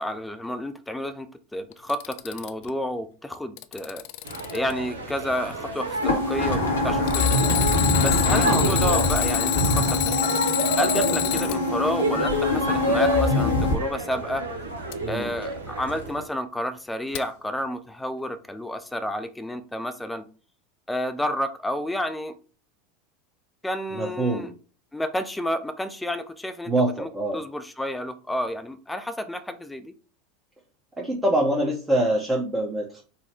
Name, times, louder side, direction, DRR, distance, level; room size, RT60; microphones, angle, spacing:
voice 1, 0.0-4.1 4.5-7.6 8.0-10.4 10.8-14.4 15.1-20.3 20.9-22.3 23.6-24.5 24.9-26.7 27.0-29.9, left 1 dB, 5° left, 12 dB, 0.6 m, -30 dB
Alarm, 1.7-2.7 3.3-4.7 7.1-11.6 14.9-15.0 17.1-17.2, left 17 dB, 55° left, 0.3 m, -28 dB
sound 1, 4.2-16.2, right 2 dB, 80° right, 0.8 m, -30 dB
sound 2, 6.0-13.7, left 2 dB, 80° left, 1.1 m, -24 dB
voice 2, 23.9-24.5 26.7-27.4 31.0-33.0, right 1 dB, 15° right, -1 dB, 1.0 m, -24 dB
4.1 x 2.3 x 4.4 m, 0.37 s
figure-of-eight pair, 80°, 0 cm